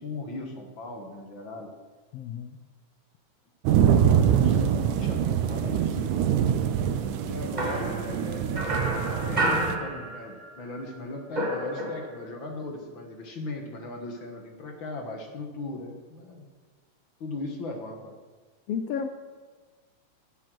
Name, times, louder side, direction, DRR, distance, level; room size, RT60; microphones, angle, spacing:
voice 1, 0.0-1.7 4.0-6.2 7.2-16.5 17.2-18.1, left 2 dB, 50° left, 4 dB, 1.7 m, -38 dB
voice 2, 2.1-2.5 18.7-19.1, left 7 dB, 80° left, 7 dB, 1.4 m, -31 dB
sound 1, 3.7-9.8, right 9 dB, 90° right, 2.2 m, -24 dB
sound 2, 7.6-10.6 10.9-12.3, right 1 dB, 30° right, 0.8 m, -30 dB
16.5 x 7.9 x 6.1 m, 1.4 s
omnidirectional pair, 3.4 m